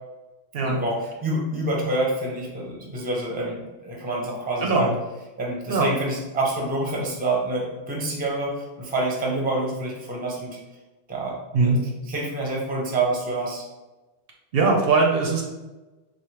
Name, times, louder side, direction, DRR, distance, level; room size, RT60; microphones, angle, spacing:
voice 1, 0.6-4.9 5.4-10.6 11.1-11.4 11.6-11.7 12.1-13.6, right 2 dB, 10° right, -2 dB, 0.5 m, -27 dB
voice 2, 4.6-4.9 5.7-5.9 11.5-11.8 14.5-15.4, right 3 dB, 65° right, 0 dB, 0.8 m, -20 dB
4.0 x 2.1 x 3.1 m, 1.1 s
omnidirectional pair, 1.1 m